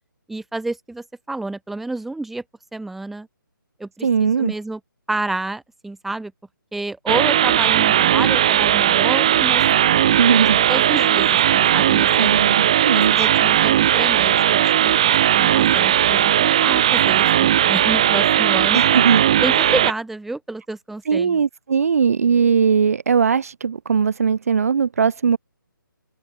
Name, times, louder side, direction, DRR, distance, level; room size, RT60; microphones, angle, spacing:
voice 1, 0.3-2.4 2.7-3.3 3.8-4.8 5.1-6.3 6.7-9.6 10.3-12.3 12.9-18.8 19.4-21.4, right 2 dB, ahead, 5.9 m, -29 dB
voice 2, 4.0-4.5 10.1-10.6 12.2-13.3 18.7-19.2 21.0-25.4, right 6 dB, 40° right, 1.5 m, -19 dB
sound 1, 7.1-19.9, right 11 dB, 20° right, 0.6 m, -17 dB
open air
hypercardioid pair, 170°, 12 cm